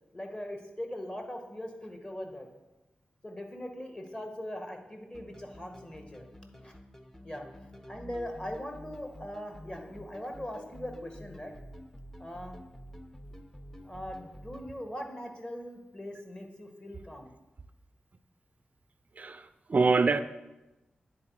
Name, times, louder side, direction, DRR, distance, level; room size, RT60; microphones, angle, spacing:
voice 1, 0.1-2.5 3.2-6.3 6.6-6.7 7.2-7.5 7.9-11.5 12.2-12.6 13.8-17.3, left 1 dB, 25° left, 1.4 m, -40 dB
sound 1, 5.1-14.8, equal, 10° left, 0.6 m, -49 dB
voice 2, 19.2-20.2, right 4 dB, 45° right, 0.3 m, -25 dB
9.8 x 4.0 x 4.6 m
cardioid pair, 60°, 4 cm